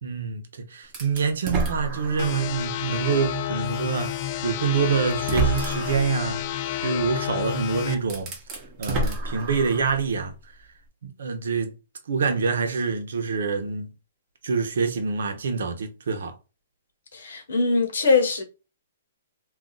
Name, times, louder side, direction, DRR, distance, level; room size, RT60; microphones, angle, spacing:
voice 1, 0.0-6.4 6.8-8.3 8.8-10.3 11.0-11.7 12.1-13.9 14.4-16.3, right 5 dB, 75° right, 0.8 m, -26 dB
sound 1, 0.9-2.6 3.1-3.2 4.4-4.5 5.1-6.1 7.5-7.6 8.0-10.0, right 3 dB, 25° right, 0.8 m, -29 dB
sound 2, 2.2-7.9, left 12 dB, 35° left, 0.4 m, -30 dB
voice 2, 17.1-18.4, left 4 dB, 75° left, 1.1 m, -22 dB
2.5 x 2.4 x 3.9 m
hypercardioid pair, 160°, 0 cm